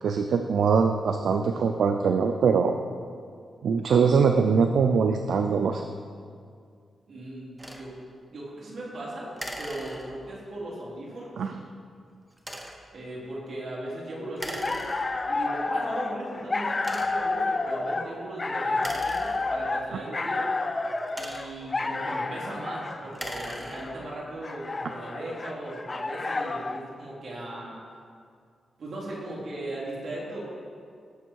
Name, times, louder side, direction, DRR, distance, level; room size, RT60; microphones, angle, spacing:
voice 1, 0.0-2.8 3.6-5.8 11.4-11.5, right 5 dB, 80° right, 6 dB, 0.5 m, -22 dB
voice 2, 7.1-7.9 8.3-11.4 12.9-14.8 15.3-20.5 21.2-27.8 28.8-30.4, right 1 dB, 65° right, -5 dB, 3.6 m, -38 dB
sound 1, 7.6-7.9 9.4-10.4 12.4-12.9 14.4-15.4 16.1-16.2 16.8-17.4 18.7-19.9 20.8-21.7 23.0-24.1, right 1 dB, 10° right, 1.3 m, -39 dB
sound 2, 14.4-26.8, left 3 dB, 30° left, 0.6 m, -30 dB
18.0 x 6.9 x 4.6 m, 2.2 s
cardioid pair, 90°, 0 cm